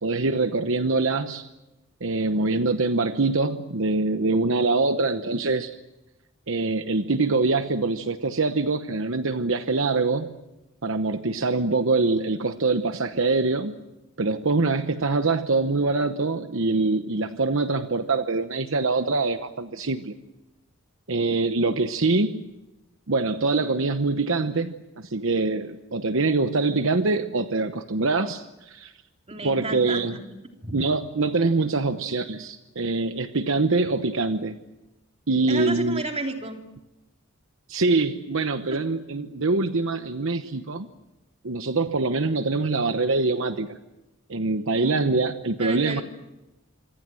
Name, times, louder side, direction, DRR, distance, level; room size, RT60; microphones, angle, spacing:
voice 1, 0.0-1.5 2.0-5.8 6.5-10.3 10.8-13.9 14.2-20.1 21.1-22.4 23.1-28.9 29.4-30.1 30.7-34.6 35.3-36.0 37.7-40.9 41.4-43.8 44.3-46.0, right 3 dB, 60° right, 9 dB, 1.0 m, -24 dB
voice 2, 29.3-30.2 30.6-30.8 35.5-36.6 38.7-38.8 44.8-45.0 45.6-46.0, right 2 dB, 30° right, 3 dB, 3.3 m, -32 dB
27.0 x 25.0 x 7.7 m, 1.0 s
head